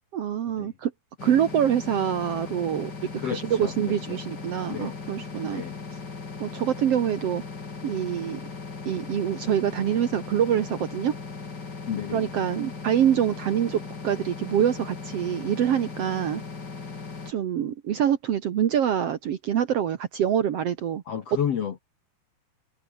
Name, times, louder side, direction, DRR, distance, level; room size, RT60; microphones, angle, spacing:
voice 1, 0.1-0.9 1.2-2.9 3.2-5.6 6.4-7.4 7.8-8.4 8.8-11.2 12.1-16.4 17.3-21.0, right 9 dB, 90° right, 1.3 m, -25 dB
sound 1, 1.2-17.3, left 4 dB, 25° left, 3.1 m, -38 dB
voice 2, 3.2-4.2 4.7-5.0 5.4-5.8 11.9-12.3 21.1-21.8, left 8 dB, 60° left, 1.8 m, -31 dB
omnidirectional pair, 4.9 m